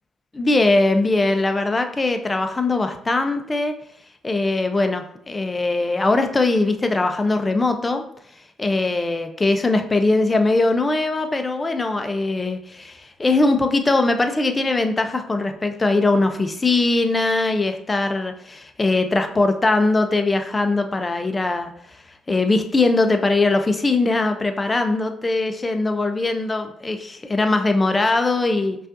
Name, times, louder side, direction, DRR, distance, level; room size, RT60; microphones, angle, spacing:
voice 1, 0.3-3.8 4.2-8.0 8.6-21.7 22.3-28.8, left 2 dB, 25° left, 6 dB, 0.5 m, -21 dB
5.2 x 2.4 x 2.6 m, 0.69 s
cardioid pair, 90°, 0 cm